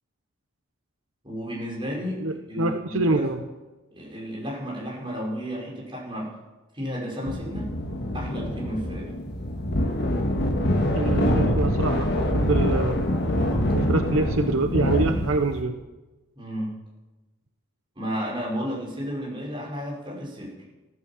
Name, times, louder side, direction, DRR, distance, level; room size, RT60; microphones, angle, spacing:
voice 1, 1.2-3.3 3.9-6.3 6.7-7.7 8.1-9.1 13.3-13.7 16.4-16.7 18.0-20.6, equal, 25° right, -4 dB, 5.6 m, -32 dB
voice 2, 2.2-3.4 10.9-13.0 13.7-15.8, right 3 dB, 75° right, 6 dB, 1.0 m, -25 dB
sound 1, 7.3-15.6, left 1 dB, 50° left, 1.7 m, -25 dB
15.0 x 12.0 x 7.3 m, 1.1 s
head